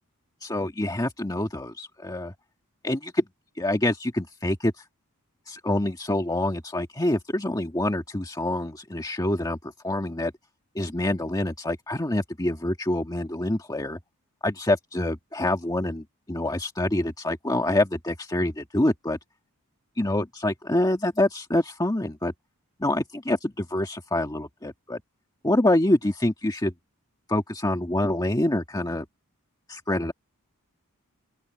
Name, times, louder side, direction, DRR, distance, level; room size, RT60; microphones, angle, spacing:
voice 1, 0.4-2.3 2.8-3.2 3.6-4.8 5.5-10.3 10.7-14.0 14.4-19.2 20.0-22.3 22.8-25.0 25.4-26.7 27.3-29.0 29.7-30.1, left 1 dB, 15° left, 1.6 m, -26 dB
open air
head